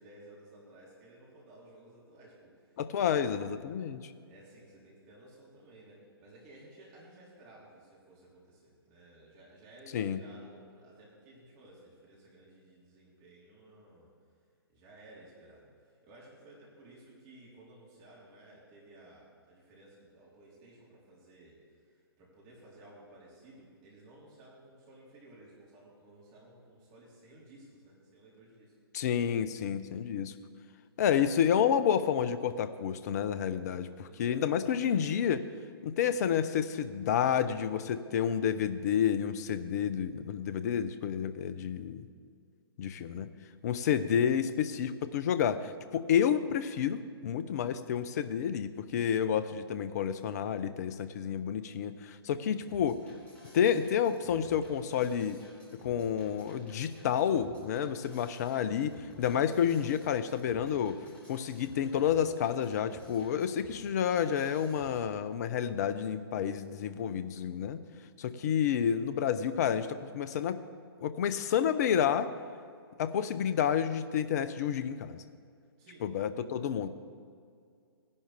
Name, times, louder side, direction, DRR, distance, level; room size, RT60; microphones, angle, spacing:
voice 1, 0.0-3.3 4.3-14.1 14.7-28.8 34.0-34.4 75.8-76.1, right 1 dB, 30° right, -5 dB, 3.8 m, -56 dB
voice 2, 2.8-4.1 9.9-10.2 28.9-30.3 31.0-35.4 35.8-42.1 42.8-43.3 43.6-53.0 53.5-55.4 55.8-67.8 68.2-70.6 71.0-72.3 73.0-75.2 76.0-76.9, left 8 dB, 40° left, 13 dB, 0.6 m, -30 dB
sound 1, 52.7-65.0, equal, 10° left, 3.2 m, -54 dB
18.0 x 11.0 x 3.5 m, 2.3 s
figure-of-eight pair, 125°, 13 cm